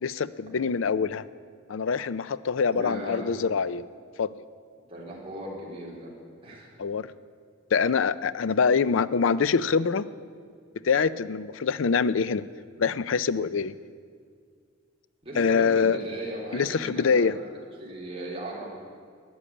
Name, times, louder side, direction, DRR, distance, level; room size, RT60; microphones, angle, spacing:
voice 1, 0.0-1.2 1.7-3.8 4.2-4.3 6.8-7.1 7.7-10.1 10.8-12.4 12.8-13.7 15.4-16.0 16.5-17.3, left 5 dB, 70° left, 16 dB, 0.5 m, -24 dB
voice 2, 2.7-3.3 4.9-6.1 6.4-6.7 15.2-18.6, right 1 dB, 30° right, -4 dB, 3.8 m, -37 dB
13.5 x 9.9 x 8.7 m, 2.1 s
head